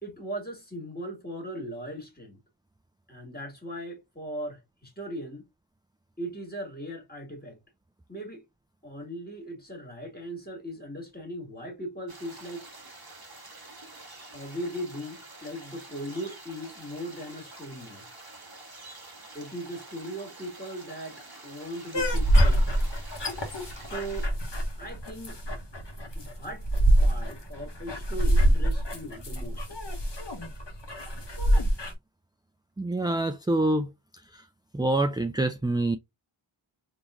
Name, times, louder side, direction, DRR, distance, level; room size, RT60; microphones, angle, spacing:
voice 1, 0.0-2.4 3.1-5.4 6.2-7.6 8.1-8.4 8.8-12.6 14.3-18.1 19.3-22.8 23.8-24.3 24.8-25.4 26.2-26.6 27.0-29.7, equal, 20° left, 2.0 m, -38 dB
sound 1, 12.1-24.3, right 2 dB, 45° right, 1.4 m, -47 dB
sound 2, 21.9-31.9, right 1 dB, 55° left, 1.3 m, -25 dB
voice 2, 32.8-33.9 34.3-34.4 34.7-36.0, right 2 dB, 10° right, 0.3 m, -26 dB
3.7 x 3.0 x 2.5 m
wide cardioid pair, 45°, 50 cm